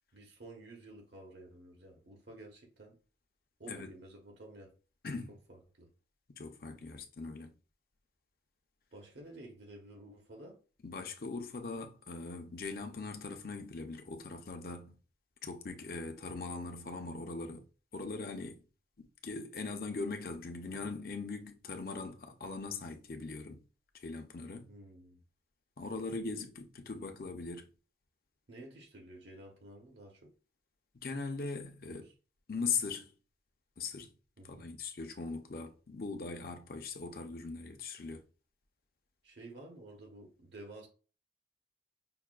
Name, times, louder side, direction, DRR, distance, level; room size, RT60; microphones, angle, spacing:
voice 1, 0.1-2.9 3.6-4.7 5.5-5.9 8.9-10.6 24.7-25.2 28.5-30.3 31.8-32.1 34.4-34.7 39.2-40.9, right 2 dB, 75° right, 1.0 m, -52 dB
voice 2, 6.4-7.5 10.8-15.0 15.4-17.7 17.9-18.6 19.0-23.6 24.0-24.7 25.8-27.7 31.0-32.0 32.5-33.1 33.8-34.1 34.4-38.2, left 4 dB, 55° left, 0.6 m, -40 dB
5.6 x 2.2 x 2.4 m
head